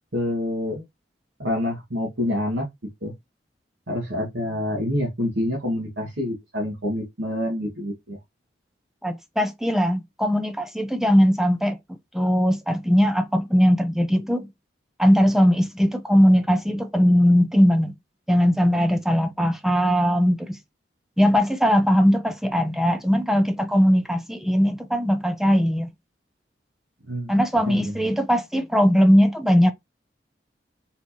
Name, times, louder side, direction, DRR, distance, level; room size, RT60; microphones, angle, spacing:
voice 1, 0.1-0.8 1.4-2.7 3.0-3.1 3.9-8.2 27.1-27.3 27.7-28.0, left 1 dB, 75° right, 1.8 m, -27 dB
voice 2, 9.0-14.5 15.0-17.9 18.3-20.6 21.2-25.9 27.3-29.7, equal, ahead, 0.6 m, -20 dB
4.4 x 3.9 x 2.9 m
head